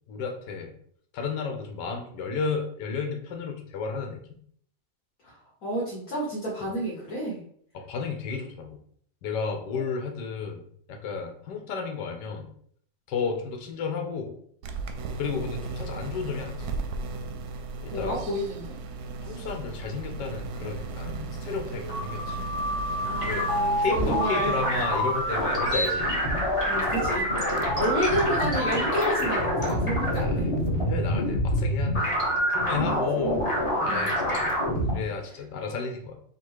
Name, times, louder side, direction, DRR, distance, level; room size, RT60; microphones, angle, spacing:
voice 1, 0.1-0.7 1.1-4.4 6.6-6.7 7.7-8.8 9.2-12.5 13.1-14.3 15.2-16.7 17.8-18.2 19.2-22.4 23.2-23.5 23.8-26.1 27.6-27.8 30.2-30.5 30.9-32.1 32.5-33.4 33.8-36.2, left 5 dB, 75° left, 3 dB, 1.3 m, -33 dB
voice 2, 5.6-7.4 17.9-18.7 23.0-24.6 26.7-27.3 27.8-30.4 32.8-33.5 33.9-34.1, equal, 55° left, -5 dB, 1.5 m, -30 dB
sound 1, 14.6-31.8, right 3 dB, 70° right, 1.0 m, -37 dB
sound 2, 21.7-34.9, equal, 20° left, 1.0 m, -26 dB
3.7 x 2.5 x 4.6 m, 0.63 s
omnidirectional pair, 1.9 m